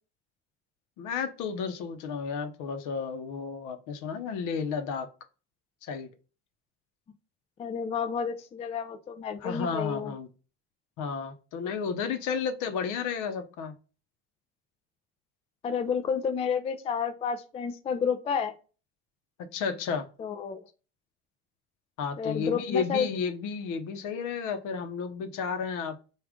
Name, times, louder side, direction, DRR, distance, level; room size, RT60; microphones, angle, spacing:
voice 1, 1.0-5.1 5.8-6.1 9.4-10.3 11.0-13.7 19.4-20.0 22.0-26.0, left 6 dB, 65° left, 0.8 m, -32 dB
voice 2, 7.6-10.1 15.6-18.5 20.2-20.6 22.2-23.1, left 6 dB, 20° left, 0.3 m, -30 dB
3.6 x 2.4 x 3.5 m
supercardioid pair, 95°, 33 cm